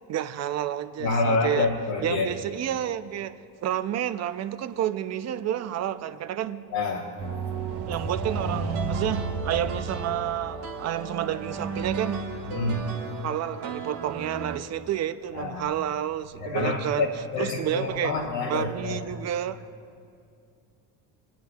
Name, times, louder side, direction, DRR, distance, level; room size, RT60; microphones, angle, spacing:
voice 1, 0.1-1.7 2.0-6.6 7.9-12.2 13.2-18.2 18.4-19.6, right 11 dB, 40° right, 13 dB, 0.5 m, -30 dB
voice 2, 1.0-2.3 6.7-7.1 12.5-12.9 15.3-15.6 16.4-19.0, left 3 dB, 85° left, -5 dB, 1.3 m, -27 dB
sound 1, 7.2-14.6, right 4 dB, 80° right, 1.4 m, -32 dB
19.5 x 10.5 x 2.3 m, 2.4 s
supercardioid pair, 85°, 45 cm